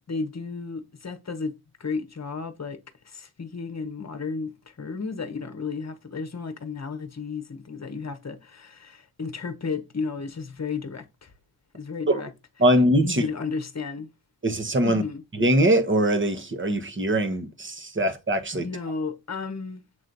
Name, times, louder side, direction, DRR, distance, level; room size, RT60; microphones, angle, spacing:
voice 1, 0.1-11.3 11.7-12.3 13.0-14.1 14.8-15.2 18.6-19.8, left 4 dB, 35° left, 1.1 m, -33 dB
voice 2, 12.6-13.2 14.4-15.0 15.4-18.6, right 1 dB, 25° right, 1.1 m, -22 dB
8.0 x 3.1 x 3.9 m
wide cardioid pair, 80°, 45 cm